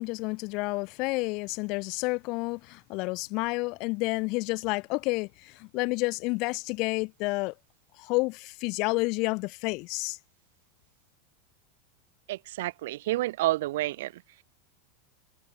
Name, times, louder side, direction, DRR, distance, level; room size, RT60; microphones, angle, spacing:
voice 1, 0.0-7.5 8.0-10.2, left 26 dB, 55° left, 0.6 m, -30 dB
voice 2, 12.3-14.2, right 16 dB, 70° right, 0.9 m, -29 dB
hypercardioid pair, 90°, 0 cm